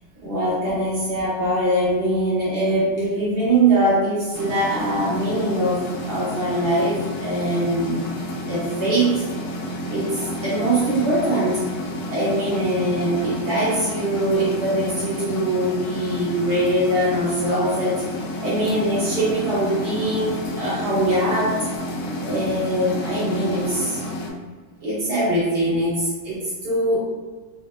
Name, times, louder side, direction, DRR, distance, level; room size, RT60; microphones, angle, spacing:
voice 1, 0.2-8.1 8.5-9.3 9.9-11.6 12.1-18.0 18.4-21.6 22.2-24.0 24.8-27.0, right 1 dB, 55° right, -9 dB, 1.6 m, -22 dB
sound 1, 4.3-24.3, left 1 dB, 85° left, 1.4 m, -30 dB
4.1 x 2.1 x 2.4 m, 1.4 s
omnidirectional pair, 2.3 m